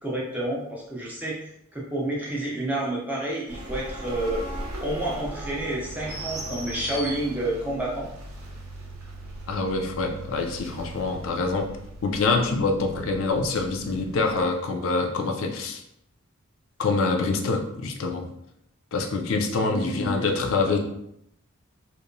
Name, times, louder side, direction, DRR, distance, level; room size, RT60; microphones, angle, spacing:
voice 1, 0.0-4.4 4.8-8.1 19.6-20.3, right 1 dB, 5° right, -5 dB, 0.4 m, -29 dB
sound 1, 3.5-14.4, right 1 dB, 80° right, 0.7 m, -38 dB
voice 2, 9.5-11.7 12.0-15.8 16.8-18.3 18.9-20.8, left 3 dB, 60° left, 3 dB, 0.4 m, -25 dB
2.8 x 2.1 x 2.5 m, 0.76 s
head